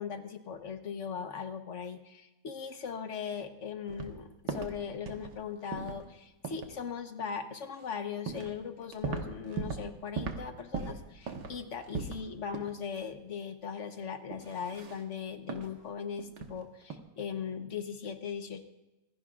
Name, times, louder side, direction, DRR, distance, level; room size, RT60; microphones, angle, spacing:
voice 1, 0.0-18.6, left 6 dB, 50° left, 7 dB, 1.3 m, -39 dB
sound 1, 3.9-4.2 4.5-4.8 5.1-5.4 5.7-6.0 6.4-6.7 7.8-7.9 8.3-8.6 8.8-9.9 10.2-10.5 10.7-12.2 12.5-12.8 13.1-13.2 14.3-15.0 15.5-15.7 16.2-16.5 16.8-17.0, right 5 dB, 85° right, 1.9 m, -38 dB
25.5 x 16.0 x 2.5 m, 1.0 s
omnidirectional pair, 1.8 m